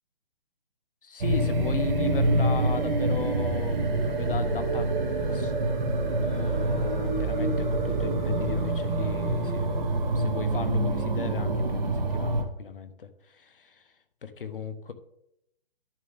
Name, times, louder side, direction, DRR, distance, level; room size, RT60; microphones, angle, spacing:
voice 1, 1.0-4.9 5.3-5.5 6.2-9.7 10.1-13.9 14.2-14.9, left 6 dB, 65° left, 10 dB, 1.2 m, -36 dB
sound 1, 1.2-12.4, right 2 dB, 50° right, 2.4 m, -26 dB
12.0 x 7.6 x 3.6 m, 0.81 s
figure-of-eight pair, 140°, 29 cm